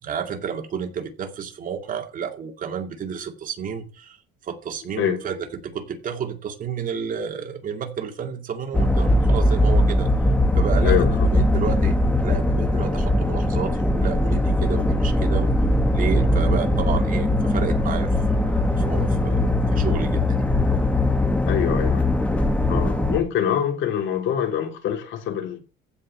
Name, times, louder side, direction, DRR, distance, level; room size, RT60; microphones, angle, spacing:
voice 1, 0.0-4.2 4.4-10.1 10.6-11.1 11.3-15.5 15.9-20.5, right 7 dB, 40° right, 2.3 m, -31 dB
sound 1, 8.7-23.2, left 1 dB, 5° left, 1.4 m, -20 dB
voice 2, 10.8-11.3 21.4-22.1 22.7-25.6, left 9 dB, 70° left, 3.2 m, -24 dB
15.0 x 5.1 x 7.6 m
cardioid pair, 165°, 20 cm